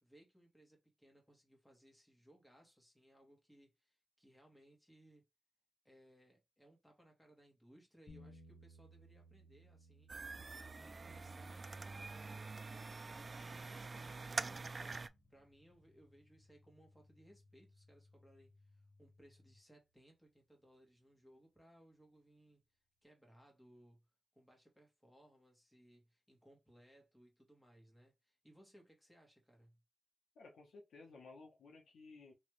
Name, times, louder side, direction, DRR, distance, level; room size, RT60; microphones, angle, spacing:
voice 1, 0.0-5.3 5.9-10.4 10.7-22.6 23.0-24.1 24.3-29.8, right 1 dB, 5° left, 1.8 m, -66 dB
sound 1, 8.1-18.1, right 1 dB, 55° left, 1.5 m, -65 dB
sound 2, 10.1-15.1, right 3 dB, 40° right, 0.3 m, -45 dB
sound 3, 14.5-19.6, left 2 dB, 35° left, 1.0 m, -68 dB
voice 2, 30.3-32.3, left 3 dB, 90° left, 1.2 m, -56 dB
3.3 x 3.2 x 3.3 m
cardioid pair, 85°, 0 cm